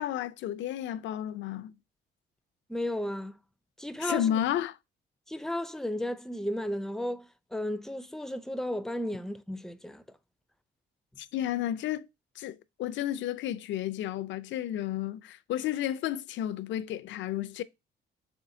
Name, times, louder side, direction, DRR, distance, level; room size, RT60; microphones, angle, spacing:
voice 1, 0.0-1.7 4.0-4.8 11.2-12.1 12.4-17.6, left 11 dB, 70° left, 0.4 m, -32 dB
voice 2, 2.7-3.4 3.8-4.4 5.3-10.0, left 1 dB, ahead, 0.4 m, -34 dB
4.3 x 3.3 x 2.6 m
cardioid pair, 90°, 20 cm